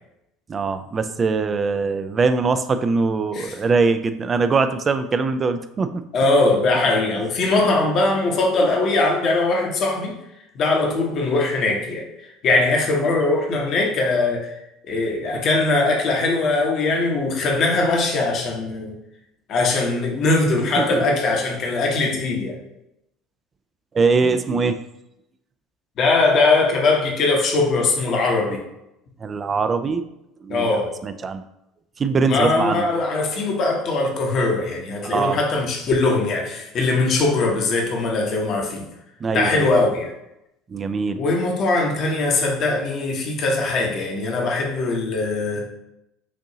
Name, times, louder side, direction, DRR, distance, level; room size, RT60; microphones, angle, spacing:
voice 1, 0.5-6.0 20.8-21.1 23.9-24.8 29.2-30.0 30.4-31.4 32.0-32.9 35.0-35.4 39.2-39.7 40.7-41.2, right 4 dB, 30° right, 10 dB, 0.4 m, -22 dB
voice 2, 6.1-10.2 10.5-14.5 14.8-19.0 19.5-22.6 26.0-28.6 30.5-30.9 32.3-38.8 39.3-40.1 41.2-45.7, left 3 dB, 50° left, 0 dB, 1.1 m, -21 dB
6.3 x 2.7 x 2.8 m, 0.85 s
hypercardioid pair, 65°, 0 cm